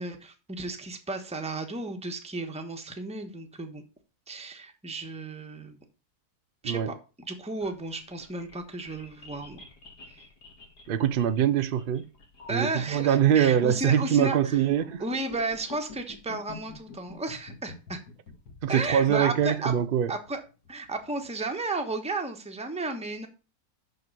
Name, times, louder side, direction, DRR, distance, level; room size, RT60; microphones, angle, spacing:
voice 1, 0.0-3.8 4.3-5.8 6.6-9.6 10.1-10.2 12.5-14.6 15.0-18.0 18.7-19.7 20.1-20.4 20.7-23.3, right 2 dB, 5° right, 1.0 m, -33 dB
sound 1, 7.4-21.5, left 4 dB, 85° left, 2.5 m, -48 dB
voice 2, 10.9-12.1 12.5-15.0 18.6-20.1, right 9 dB, 75° right, 0.5 m, -23 dB
6.7 x 6.1 x 6.7 m
omnidirectional pair, 1.7 m